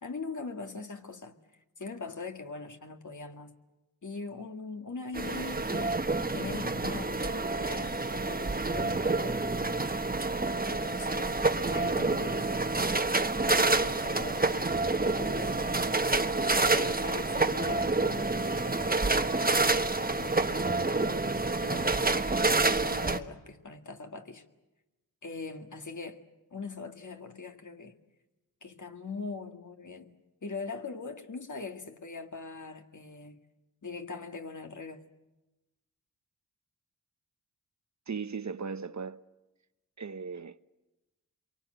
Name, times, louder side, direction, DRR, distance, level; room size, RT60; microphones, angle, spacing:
voice 1, 0.0-1.4 1.8-3.5 4.0-9.9 10.7-11.4 11.7-13.1 13.3-21.3 21.6-24.4 25.2-28.0 28.6-33.4 33.8-35.0, left 4 dB, 55° left, 2.2 m, -42 dB
sound 1, 5.1-23.2, right 3 dB, 25° right, 1.3 m, -28 dB
voice 2, 38.1-39.2 40.0-40.6, right 5 dB, 50° right, 0.9 m, -37 dB
27.0 x 23.5 x 8.0 m
cardioid pair, 50°, 37 cm